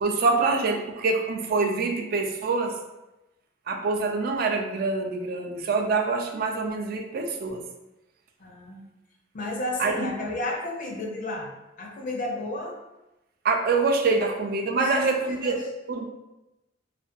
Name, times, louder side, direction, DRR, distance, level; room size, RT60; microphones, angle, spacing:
voice 1, 0.0-2.8 3.7-7.6 9.8-10.1 13.4-15.5 15.9-16.1, right 3 dB, 55° right, 3 dB, 0.3 m, -25 dB
voice 2, 8.4-8.8 9.3-11.5 11.8-12.8 14.2-14.3 14.8-15.6, left 1 dB, 45° left, 0 dB, 0.5 m, -32 dB
2.5 x 2.2 x 2.5 m, 0.97 s
head